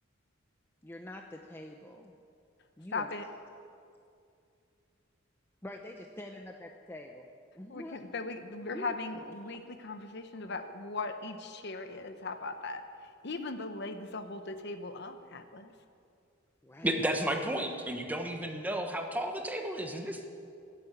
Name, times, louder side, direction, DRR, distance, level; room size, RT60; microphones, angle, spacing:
voice 1, 0.8-2.2 2.8-3.1 5.6-7.3 7.6-8.0 8.7-8.9 16.6-16.9, left 1 dB, 10° left, 2 dB, 0.7 m, -45 dB
voice 2, 2.9-3.3 7.7-15.7, left 3 dB, 60° left, 8 dB, 1.0 m, -39 dB
voice 3, 16.8-20.2, right 1 dB, 10° right, 4 dB, 1.2 m, -32 dB
18.0 x 8.6 x 8.2 m, 2.4 s
head